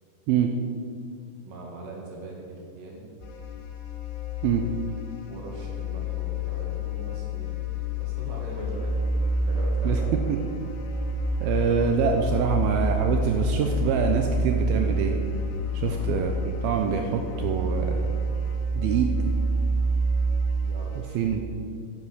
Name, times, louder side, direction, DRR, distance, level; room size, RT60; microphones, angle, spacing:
voice 1, 1.5-3.1 5.3-10.4 15.8-16.1 20.6-21.2, right 2 dB, 65° right, -2 dB, 4.3 m, -41 dB
sound 1, 3.2-21.4, right 1 dB, 75° left, 3.4 m, -28 dB
voice 2, 11.4-15.1 15.7-16.3 16.6-18.1 18.8-19.1 21.1-21.4, right 7 dB, 85° right, 4 dB, 2.1 m, -25 dB
11.0 x 11.0 x 6.3 m, 2.5 s
omnidirectional pair, 5.3 m